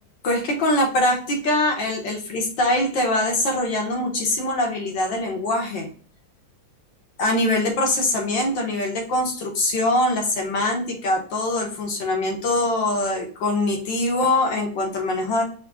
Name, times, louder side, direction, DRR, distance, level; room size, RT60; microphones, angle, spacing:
voice 1, 0.2-5.9 7.2-15.4, left 1 dB, 75° left, 1 dB, 2.0 m, -23 dB
5.1 x 4.1 x 2.3 m, 0.43 s
omnidirectional pair, 2.0 m